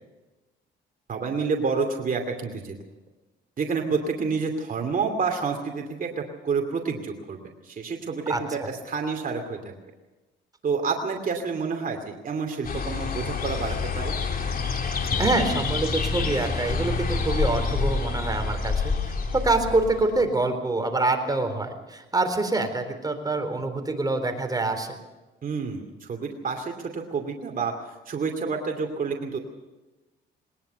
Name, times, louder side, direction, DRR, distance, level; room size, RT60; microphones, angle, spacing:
voice 1, 1.1-2.7 3.6-9.7 10.6-14.2 25.4-27.7 28.1-29.4, right 5 dB, 45° right, 3 dB, 2.7 m, -29 dB
voice 2, 8.3-8.7 15.2-24.9, right 2 dB, 20° right, 6 dB, 3.9 m, -26 dB
sound 1, 12.6-20.3, left 4 dB, 45° left, 3.4 m, -27 dB
20.0 x 20.0 x 6.8 m, 1.1 s
cardioid pair, 90°, 20 cm